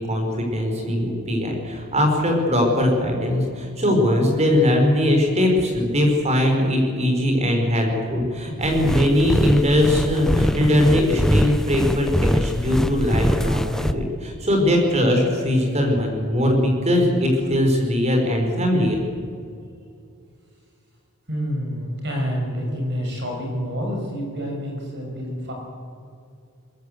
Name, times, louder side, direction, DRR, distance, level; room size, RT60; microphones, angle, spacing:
voice 1, 0.0-19.0, left 1 dB, 30° right, 2 dB, 5.1 m, -20 dB
sound 1, 8.6-13.9, equal, ahead, 0.8 m, -22 dB
voice 2, 21.3-25.5, equal, 50° right, 0 dB, 6.4 m, -28 dB
21.5 x 21.5 x 8.1 m, 2.4 s
head